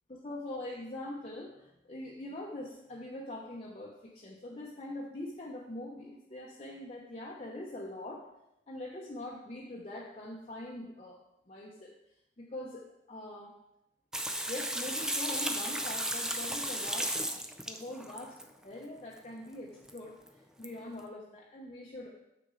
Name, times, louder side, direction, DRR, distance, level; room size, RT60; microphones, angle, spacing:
voice 1, 0.1-8.2 8.7-11.2 11.5-11.9 12.4-13.6 14.5-17.2 17.6-18.4 18.6-22.1, left 1 dB, 35° left, -2 dB, 0.8 m, -43 dB
Water tap faucet / Sink (filling or washing), 14.1-18.4 19.9-20.0 20.3-20.4 20.6-20.7, right 1 dB, 5° right, 0.4 m, -34 dB
6.8 x 6.2 x 3.8 m, 0.83 s
head